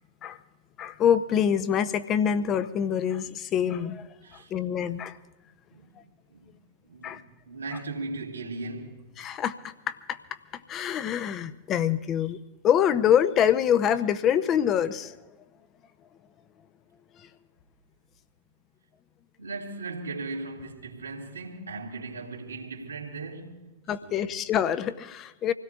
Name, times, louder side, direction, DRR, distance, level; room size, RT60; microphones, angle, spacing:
voice 1, 0.8-4.1 4.5-5.2 7.0-7.2 9.2-10.2 10.5-12.4 12.6-15.1 17.2-17.3 23.9-25.5, left 9 dB, 30° left, 0.8 m, -25 dB
voice 2, 4.2-4.5 5.7-5.9 6.3-6.5 6.8-9.3 19.4-23.7 24.0-24.3, right 3 dB, 85° right, 2.9 m, -38 dB
26.5 x 17.0 x 2.5 m
figure-of-eight pair, 90°, 0 cm